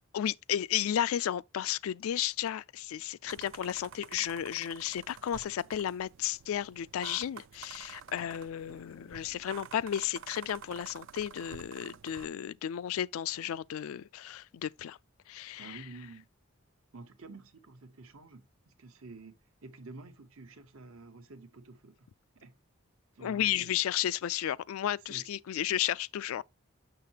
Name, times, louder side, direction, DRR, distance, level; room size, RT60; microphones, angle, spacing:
voice 1, 0.1-15.0 15.3-15.8 23.2-26.4, left 11 dB, 80° left, 0.3 m, -33 dB
sound 1, 3.3-12.3, right 8 dB, 60° right, 0.3 m, -50 dB
voice 2, 15.6-16.3 16.9-19.3 19.6-22.1 22.3-22.6 23.1-23.7 25.1-25.3, right 3 dB, 75° right, 1.0 m, -50 dB
6.7 x 6.5 x 2.8 m
head